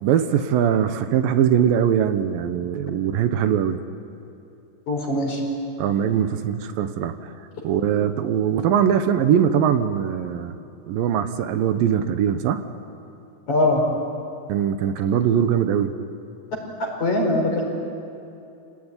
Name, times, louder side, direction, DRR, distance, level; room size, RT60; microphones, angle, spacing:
voice 1, 0.0-3.8 5.8-7.2 7.6-10.5 10.9-12.6 14.5-15.9, right 9 dB, 80° right, 9 dB, 2.7 m, -21 dB
voice 2, 4.9-5.4 13.5-13.8 16.8-17.6, left 2 dB, 55° left, 0 dB, 6.2 m, -21 dB
28.5 x 18.5 x 9.9 m, 2.8 s
omnidirectional pair, 4.1 m